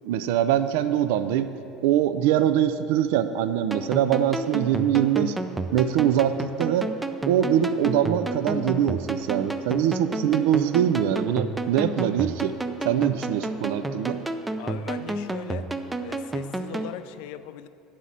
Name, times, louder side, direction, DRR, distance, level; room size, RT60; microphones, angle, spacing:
voice 1, 0.0-1.5 1.8-5.4 5.7-6.9 7.2-12.5 12.8-14.2, right 10 dB, 85° right, 11 dB, 0.3 m, -23 dB
sound 1, 3.7-16.9, right 2 dB, 10° right, 0.3 m, -31 dB
voice 2, 14.6-15.7 16.0-17.7, left 11 dB, 75° left, 13 dB, 0.3 m, -39 dB
9.8 x 4.1 x 7.3 m, 2.6 s
cardioid pair, 155°, 0 cm